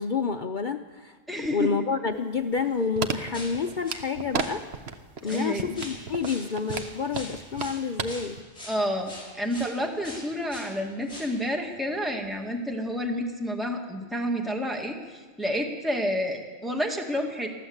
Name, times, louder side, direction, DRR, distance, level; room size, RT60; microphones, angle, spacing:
voice 1, 0.0-4.7 5.2-8.4, left 5 dB, 45° left, 6 dB, 0.8 m, -29 dB
voice 2, 1.3-1.7 5.2-5.7 8.7-17.5, equal, ahead, 2 dB, 2.0 m, -29 dB
sound 1, 2.1-4.5 4.7-5.3 5.6-8.1 8.4-8.5, right 6 dB, 60° right, 1.2 m, -32 dB
sound 2, 3.3-4.0 4.4-4.6 5.2-9.8 10.0-10.7 11.1-11.4 11.7-11.9 12.2-12.3 13.1-13.2, left 1 dB, 25° left, 6.7 m, -43 dB
23.5 x 15.0 x 8.0 m, 1.4 s
omnidirectional pair, 1.3 m